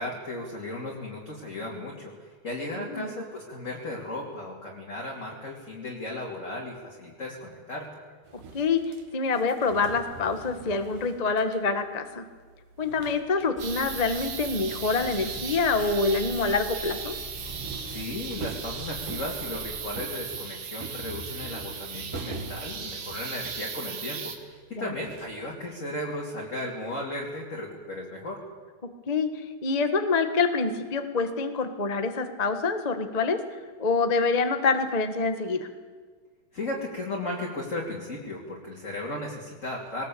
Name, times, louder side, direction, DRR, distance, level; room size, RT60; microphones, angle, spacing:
voice 1, 0.0-7.9 17.8-28.4 36.5-40.1, left 1 dB, 25° left, -2 dB, 2.7 m, -35 dB
voice 2, 2.8-3.1 8.5-8.8 9.1-12.2 12.8-17.2 24.8-24.9 29.1-33.4 33.8-35.7, left 4 dB, 70° left, 7 dB, 0.3 m, -26 dB
sound 1, 8.2-13.7 14.0-25.5, right 4 dB, 85° right, 3.5 m, -44 dB
sound 2, 13.6-20.1, left 3 dB, 10° right, 5.1 m, -44 dB
sound 3, 13.6-24.4, right 6 dB, 70° right, 3.2 m, -37 dB
22.0 x 19.5 x 8.5 m, 1.5 s
omnidirectional pair, 3.6 m